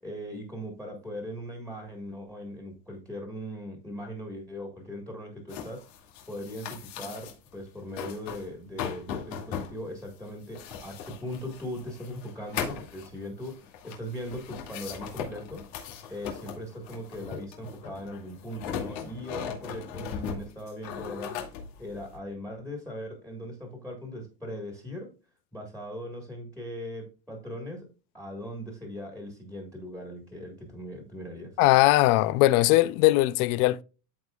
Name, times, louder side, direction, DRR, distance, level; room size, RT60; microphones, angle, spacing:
voice 1, 0.0-5.8 6.3-15.6 16.1-21.3 21.8-25.1 25.5-27.9 28.1-31.6, equal, 5° left, 1.6 m, -39 dB
sound 1, 5.5-7.5 7.8-8.5 8.8-22.2, left 8 dB, 90° left, 2.4 m, -38 dB
voice 2, 31.6-33.8, left 17 dB, 65° left, 0.6 m, -20 dB
13.5 x 4.6 x 2.3 m
cardioid pair, 165°, 49 cm